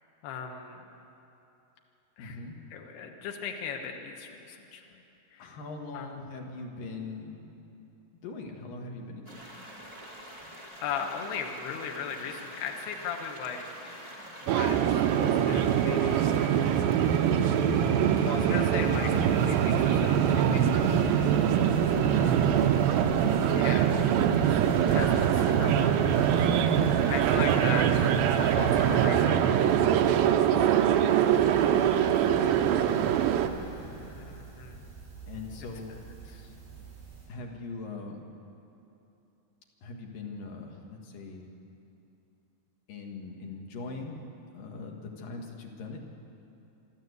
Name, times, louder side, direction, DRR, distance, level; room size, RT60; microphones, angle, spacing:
voice 1, 0.2-0.8 2.2-2.4 2.7-4.8 5.3-5.6 5.9-6.1 10.8-16.8 18.2-20.8 21.1-21.8 22.2-22.3 23.4-23.9 24.4-26.7 27.1-29.8 30.2-30.9 31.9-32.3 34.0-34.9 36.3-36.5, left 6 dB, 85° left, 2 dB, 3.4 m, -39 dB
voice 2, 2.2-2.5 5.4-7.5 8.2-9.6 21.9-22.4 31.3-31.7 35.3-36.0 37.3-38.2 39.8-41.5 42.9-44.2 44.5-46.0, left 3 dB, 60° left, 1 dB, 3.3 m, -41 dB
sound 1, 9.3-29.1, equal, 10° right, 2.1 m, -46 dB
sound 2, 14.5-33.5, right 9 dB, 75° right, 2.4 m, -23 dB
sound 3, 18.8-37.3, right 4 dB, 60° right, 7.8 m, -45 dB
26.0 x 12.5 x 8.2 m, 2.9 s
omnidirectional pair, 4.6 m